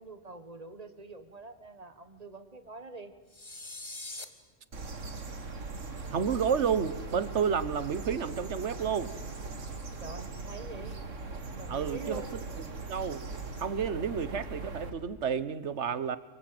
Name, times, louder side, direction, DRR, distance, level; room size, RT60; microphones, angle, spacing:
voice 1, 0.0-3.1 10.0-11.0 11.6-12.3, right 2 dB, 30° right, 10 dB, 1.8 m, -45 dB
sound 1, 3.3-4.3, left 2 dB, 25° left, 1.5 m, -42 dB
sound 2, 4.7-14.9, right 3 dB, 85° right, 2.3 m, -40 dB
voice 2, 6.1-9.1 11.7-12.4 12.8-13.2 13.6-16.2, right 7 dB, 65° right, 15 dB, 1.4 m, -30 dB
24.5 x 24.0 x 7.9 m, 1.2 s
omnidirectional pair, 1.3 m